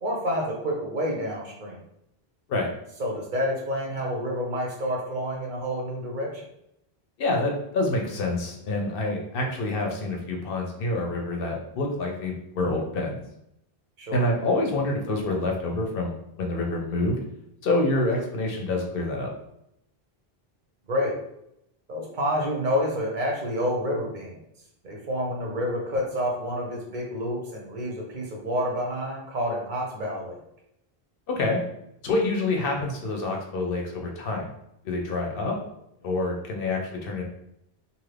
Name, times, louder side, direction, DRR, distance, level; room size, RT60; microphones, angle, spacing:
voice 1, 0.0-1.8 3.0-6.4 14.0-14.3 20.9-21.1 21.9-24.4 24.8-30.4, equal, 55° right, -1 dB, 0.8 m, -28 dB
voice 2, 7.2-13.2 14.1-17.2 17.6-19.3 31.3-31.6 32.0-34.5 34.8-35.5 36.0-37.2, left 2 dB, 65° left, 1 dB, 0.8 m, -27 dB
2.7 x 2.5 x 3.3 m, 0.79 s
omnidirectional pair, 1.0 m